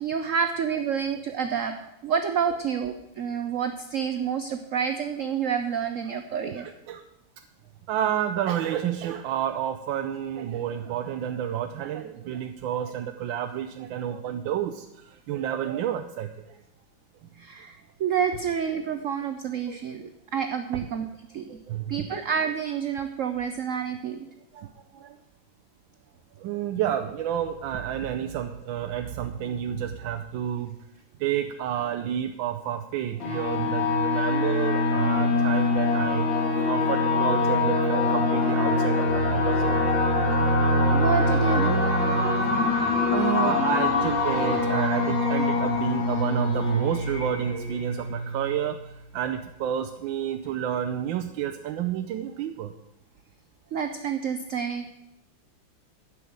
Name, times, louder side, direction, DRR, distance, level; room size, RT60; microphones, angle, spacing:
voice 1, 0.0-1.7 2.0-6.6 17.4-21.0 21.3-21.5 21.9-24.3 40.9-41.8 53.7-54.9, right 7 dB, 65° right, 8 dB, 0.8 m, -28 dB
voice 2, 6.4-7.0 7.9-16.6 19.7-19.8 20.7-20.9 21.5-22.2 24.5-25.2 26.4-30.8 31.2-36.3 36.7-39.9 42.4-42.5 42.8-52.7, right 10 dB, 85° right, 7 dB, 1.4 m, -30 dB
sound 1, 33.2-48.5, left 2 dB, 80° left, 2.8 m, -24 dB
10.0 x 6.1 x 8.6 m, 0.88 s
omnidirectional pair, 2.1 m